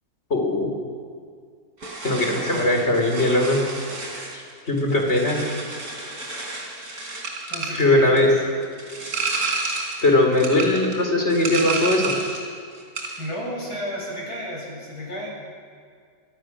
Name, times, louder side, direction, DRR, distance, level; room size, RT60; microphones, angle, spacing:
voice 1, 0.3-0.7 2.0-3.6 4.3-4.4 4.7-5.4 7.7-8.3 10.0-12.1, left 1 dB, 40° left, 2 dB, 4.4 m, -20 dB
sound 1, 1.8-12.5 12.8-13.3, right 3 dB, 70° right, 4.3 m, -31 dB
voice 2, 7.5-8.3 13.2-15.3, equal, 80° left, -3 dB, 8.6 m, -32 dB
25.5 x 23.0 x 6.3 m, 2.1 s
omnidirectional pair, 1.7 m